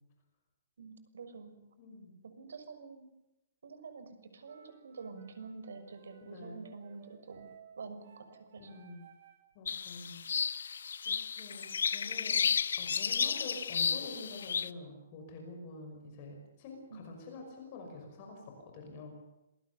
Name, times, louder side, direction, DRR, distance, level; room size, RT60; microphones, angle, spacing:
voice 1, 0.8-1.5 2.2-3.1 3.6-7.5 7.8-8.7 16.9-17.1, right 4 dB, 85° right, 10 dB, 6.3 m, -47 dB
voice 2, 1.8-2.1 6.2-6.6 8.6-9.0 9.5-10.2 11.0-12.5 12.8-19.1, left 3 dB, 25° left, 3 dB, 5.6 m, -47 dB
sound 1, 4.4-9.6, right 6 dB, 40° right, 4.2 m, -59 dB
sound 2, 9.7-14.7, left 7 dB, 70° left, 1.1 m, -33 dB
27.0 x 20.5 x 6.9 m, 0.92 s
hypercardioid pair, 180°, 0 cm